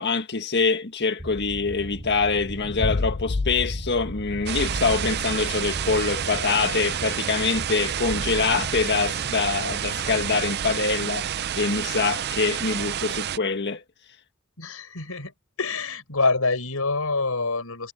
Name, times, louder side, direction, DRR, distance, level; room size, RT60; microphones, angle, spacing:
voice 1, 0.0-11.3 11.6-13.8, left 4 dB, 50° left, 1.7 m, -25 dB
sound 1, 1.2-11.3, equal, 30° right, 4.0 m, -40 dB
sound 2, 2.4-5.2, left 3 dB, 30° left, 0.4 m, -31 dB
sound 3, 4.5-13.4, right 9 dB, 45° right, 0.5 m, -29 dB
voice 2, 14.6-15.3 15.6-17.9, left 3 dB, 70° left, 6.7 m, -26 dB
head